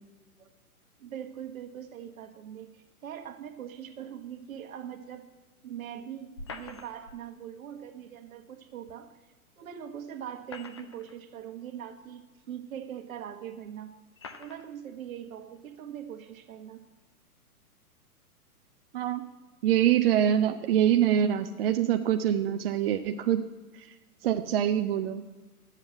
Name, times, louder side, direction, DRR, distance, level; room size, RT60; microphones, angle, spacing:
voice 1, 1.0-5.2 5.6-9.1 9.6-13.9 14.4-16.8, right 9 dB, 65° right, 6 dB, 1.4 m, -42 dB
sound 1, 6.4-7.2 8.9-9.0 10.2-11.2 12.0-12.1 13.1-13.2 14.2-14.7, left 3 dB, 20° left, 0.3 m, -44 dB
voice 2, 19.6-23.5 23.7-23.9 24.2-25.2, right 10 dB, 40° right, 6 dB, 0.5 m, -25 dB
10.5 x 7.5 x 7.7 m, 1.2 s
hypercardioid pair, 130°, 45 cm